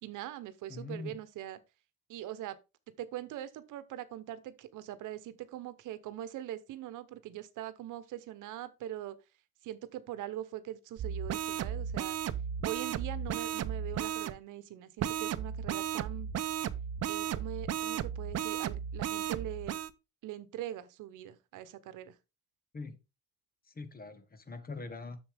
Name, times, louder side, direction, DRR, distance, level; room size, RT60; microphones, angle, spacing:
voice 1, 0.0-1.6 2.1-2.6 3.0-9.2 9.6-12.2 12.6-16.3 17.1-19.8 20.2-22.2, right 13 dB, 85° right, 1.0 m, -42 dB
voice 2, 0.7-1.2 22.7-23.0 23.6-25.2, left 3 dB, 30° left, 1.5 m, -42 dB
sound 1, 11.0-14.4 15.0-19.9, right 9 dB, 55° right, 0.7 m, -35 dB
7.1 x 6.9 x 3.5 m
cardioid pair, 90°, 30 cm